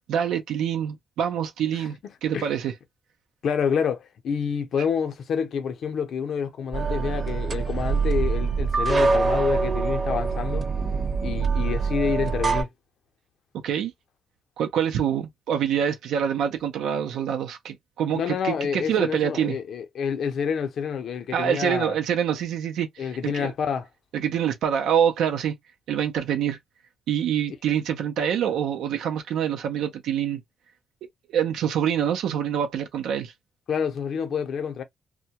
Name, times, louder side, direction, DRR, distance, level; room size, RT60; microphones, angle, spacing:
voice 1, 0.1-2.0 2.2-2.7 13.6-13.9 14.6-19.6 21.3-23.5 24.1-25.6 25.9-26.6 27.1-30.4 31.3-33.3, right 9 dB, 80° right, 0.5 m, -25 dB
voice 2, 3.4-10.7 11.2-12.7 18.1-22.0 23.0-23.9 33.7-34.8, left 7 dB, 65° left, 0.6 m, -28 dB
sound 1, 6.7-12.6, right 4 dB, 35° right, 0.8 m, -24 dB
2.2 x 2.1 x 2.8 m
cardioid pair, 90°, 0 cm